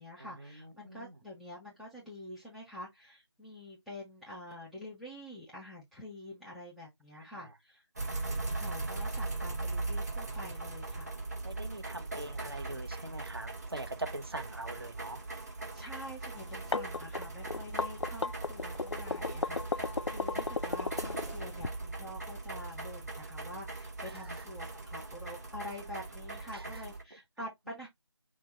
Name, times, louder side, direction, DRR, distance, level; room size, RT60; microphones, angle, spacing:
voice 1, 0.0-7.8 8.5-11.2 15.7-27.9, left 1 dB, ahead, 0.3 m, -47 dB
voice 2, 0.6-1.1 7.2-7.3 11.4-15.2 20.0-20.2 26.5-26.6, right 2 dB, 55° right, 0.9 m, -42 dB
sound 1, 8.0-27.0, right 3 dB, 35° right, 1.3 m, -40 dB
sound 2, 16.4-21.7, left 4 dB, 80° left, 0.4 m, -34 dB
6.1 x 2.1 x 3.8 m
figure-of-eight pair, 165°, 15 cm